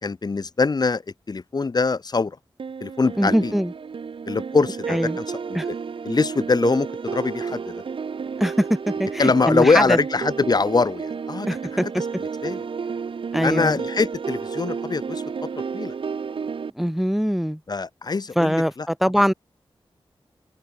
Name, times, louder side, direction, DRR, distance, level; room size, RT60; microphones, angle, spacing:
voice 1, 0.0-1.0 1.3-2.4 2.8-3.5 4.3-5.6 6.0-7.8 9.2-11.9 12.2-12.6 13.4-15.9 17.7-18.9 19.1-19.3, left 4 dB, 45° left, 1.2 m, -23 dB
sound 1, 2.6-16.7, right 5 dB, 65° right, 0.8 m, -31 dB
voice 2, 3.2-3.7 4.9-5.2 5.5-5.7 8.4-10.0 11.5-11.9 13.3-13.7 16.8-17.6 18.4-19.3, equal, ahead, 0.8 m, -22 dB
open air
wide cardioid pair, 95°, 10 cm